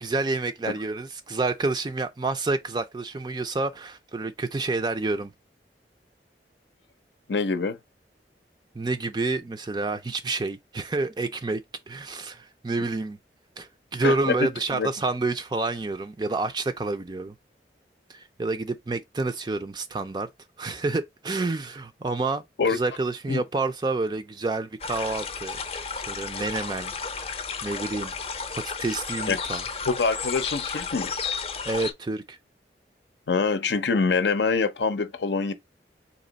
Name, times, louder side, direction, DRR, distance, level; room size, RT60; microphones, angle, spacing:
voice 1, 0.0-5.3 8.8-13.2 13.6-17.3 18.1-20.3 20.6-26.9 27.2-28.1 28.6-29.6 31.7-32.4, right 3 dB, 25° right, 0.4 m, -29 dB
voice 2, 7.3-7.8 14.0-14.9 22.6-22.8 23.3-23.4 29.3-29.4 29.8-31.1 33.3-35.5, left 4 dB, 80° left, 0.6 m, -25 dB
sound 1, 24.8-31.9, left 5 dB, 35° left, 0.6 m, -33 dB
4.1 x 2.9 x 3.9 m
head